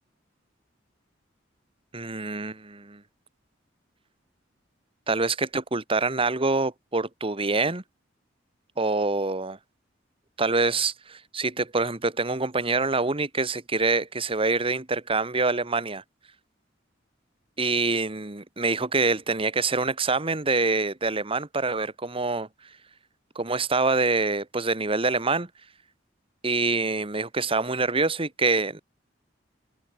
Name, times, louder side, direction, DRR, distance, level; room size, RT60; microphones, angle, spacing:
voice 1, 1.9-3.0 5.1-7.8 8.8-9.6 10.4-16.0 17.6-22.5 23.3-25.5 26.4-28.8, right 3 dB, 30° right, 1.7 m, -25 dB
head